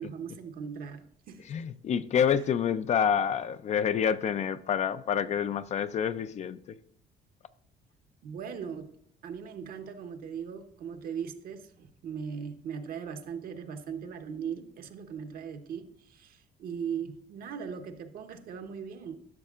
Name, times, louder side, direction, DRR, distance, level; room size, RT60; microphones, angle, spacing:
voice 1, 0.0-1.5 8.2-8.9 9.2-19.2, right 7 dB, 60° right, 0.9 m, -39 dB
voice 2, 1.4-6.8, left 8 dB, 40° left, 0.4 m, -28 dB
12.0 x 6.3 x 2.4 m
cardioid pair, 110°, 17 cm